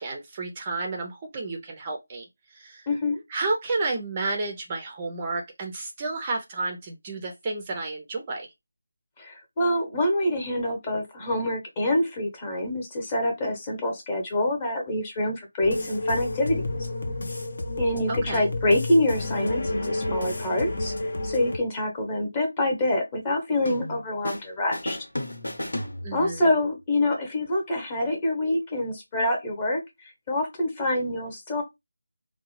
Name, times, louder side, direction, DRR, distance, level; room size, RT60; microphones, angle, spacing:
voice 1, 0.0-2.9 3.3-8.5 18.1-18.4 26.0-26.4, right 3 dB, 20° right, 0.4 m, -31 dB
voice 2, 2.9-3.2 9.2-16.6 17.7-20.9 21.2-25.0 26.1-31.6, left 1 dB, 20° left, 0.9 m, -26 dB
sound 1, 15.6-21.6, left 2 dB, 55° left, 0.6 m, -30 dB
sound 2, 23.6-24.5 24.7-26.5, left 1 dB, 80° left, 1.1 m, -33 dB
3.5 x 2.1 x 3.1 m
figure-of-eight pair, 165°, 0 cm